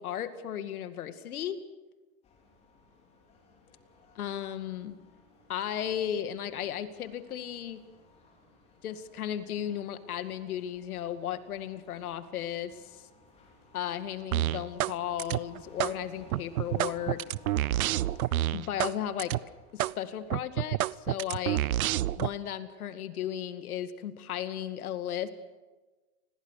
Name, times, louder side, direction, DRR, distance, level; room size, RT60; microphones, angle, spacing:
voice 1, 0.0-1.6 4.2-5.0 5.5-7.8 8.8-13.0 13.7-17.2 18.5-19.3 19.7-21.6 22.2-25.3, left 10 dB, 70° left, 10 dB, 2.2 m, -35 dB
sound 1, 2.2-20.3, left 2 dB, 15° left, 3.8 m, -58 dB
sound 2, 14.3-14.9 15.2-15.9 16.3-18.9 19.2-19.4 19.8-19.9 20.3-22.3, right 14 dB, 65° right, 0.7 m, -28 dB
29.5 x 21.5 x 6.6 m, 1.2 s
supercardioid pair, 180°, 45 cm